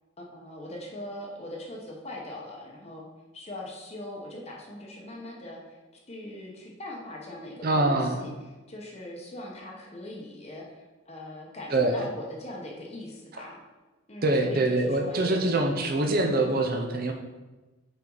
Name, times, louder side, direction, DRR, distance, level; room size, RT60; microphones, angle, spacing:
voice 1, 0.2-3.0 3.3-5.8 6.1-13.6 14.1-15.4 16.0-16.2, left 1 dB, 30° left, -1 dB, 0.9 m, -40 dB
voice 2, 7.6-8.2 11.7-12.0 14.2-17.1, right 2 dB, 40° right, 4 dB, 0.6 m, -24 dB
5.8 x 5.1 x 3.9 m, 1.1 s
head